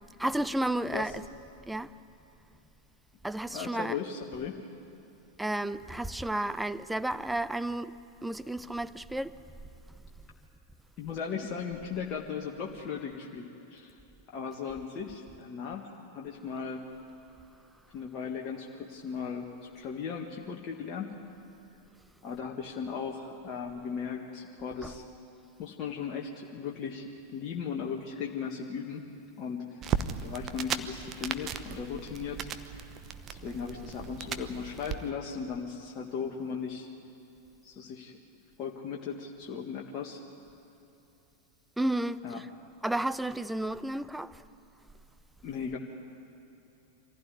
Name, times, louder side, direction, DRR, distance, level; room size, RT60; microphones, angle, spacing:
voice 1, 0.2-1.1 1.7-1.9 3.2-4.0 5.4-7.9 8.2-9.3 41.8-42.2 42.8-44.4, right 1 dB, 5° right, 0.6 m, -32 dB
voice 2, 0.8-1.2 3.5-4.6 11.0-13.9 14.3-16.8 17.9-19.5 19.7-21.1 22.2-25.0 25.6-29.0 29.4-32.9 33.3-36.9 37.6-38.2 38.6-40.2 42.2-42.4 45.4-45.8, left 6 dB, 35° left, 1.7 m, -37 dB
sound 1, 29.8-35.0, right 8 dB, 30° right, 1.0 m, -36 dB
25.0 x 16.0 x 9.8 m
figure-of-eight pair, 90°, 0 cm